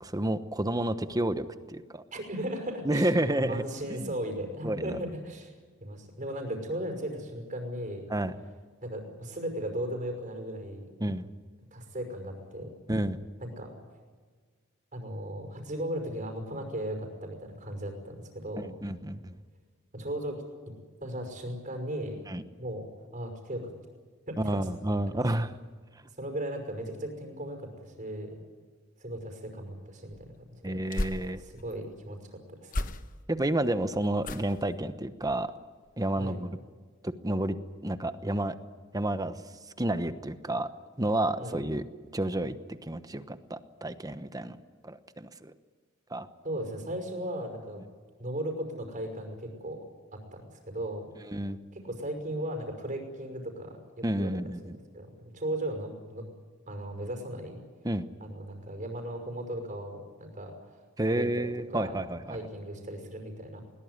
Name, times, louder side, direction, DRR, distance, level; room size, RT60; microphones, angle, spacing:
voice 1, 0.0-2.0 2.8-3.6 3.9-4.1 4.6-5.0 8.1-8.4 11.0-11.3 12.9-13.2 18.6-19.4 22.3-22.4 24.4-25.5 30.6-31.4 33.3-35.5 36.0-36.6 37.0-37.6 37.8-38.5 38.9-39.4 39.8-40.7 41.0-41.8 42.1-44.6 44.8-45.5 46.1-46.3 51.3-51.6 54.0-54.8 57.8-58.1 61.0-62.4, right 1 dB, 20° right, 11 dB, 1.0 m, -30 dB
voice 2, 2.1-3.1 3.4-5.5 5.8-8.1 8.8-10.9 11.7-12.8 13.4-13.7 14.9-18.8 19.9-20.7 21.0-22.2 22.6-22.9 23.1-23.7 24.3-24.6 26.2-28.4 29.0-30.8 31.4-32.8 36.2-36.4 41.4-41.6 46.4-47.8 48.2-49.8 50.1-51.1 51.7-54.4 54.6-56.3 56.7-57.6 58.2-60.6 61.0-62.0 62.3-63.6, right 1 dB, 40° right, 4 dB, 5.6 m, -37 dB
sound 1, 30.1-31.8 32.7-33.4 34.2-34.7 35.2-35.5 35.8-35.9, left 1 dB, 45° left, 1.0 m, -36 dB
21.0 x 19.5 x 9.6 m, 1.5 s
head